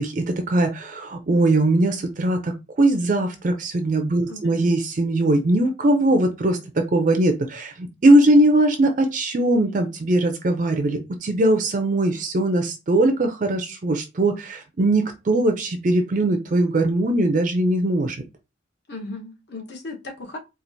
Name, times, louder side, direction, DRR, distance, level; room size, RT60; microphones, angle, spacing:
voice 1, 0.0-18.2, right 1 dB, 40° right, 0.4 m, -20 dB
voice 2, 4.3-4.7 18.9-20.4, left 2 dB, 60° left, 1.1 m, -36 dB
4.3 x 2.4 x 2.6 m
head